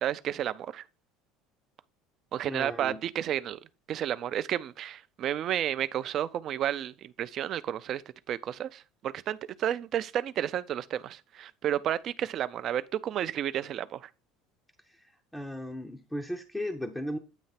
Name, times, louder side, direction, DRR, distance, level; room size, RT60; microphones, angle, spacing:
voice 1, 0.0-0.8 2.3-3.6 3.9-8.0 8.3-14.1, right 11 dB, 40° right, 0.5 m, -31 dB
voice 2, 2.5-3.0 14.9-15.1 15.3-17.2, left 1 dB, 5° left, 0.6 m, -36 dB
9.0 x 3.2 x 5.8 m
cardioid pair, 150°, 0 cm